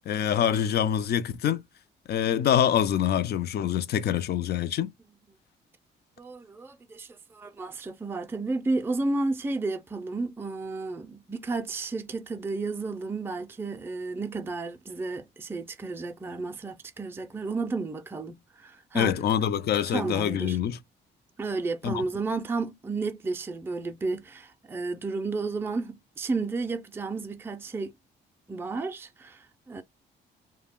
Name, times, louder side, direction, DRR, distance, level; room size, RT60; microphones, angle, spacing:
voice 1, 0.1-1.6 2.1-4.9 18.9-20.8 21.8-22.0, left 9 dB, 55° left, 0.4 m, -25 dB
voice 2, 6.2-19.2 19.9-20.6 21.4-27.9 28.5-29.8, right 3 dB, 10° right, 0.4 m, -32 dB
2.3 x 2.1 x 3.5 m
cardioid pair, 90°, 20 cm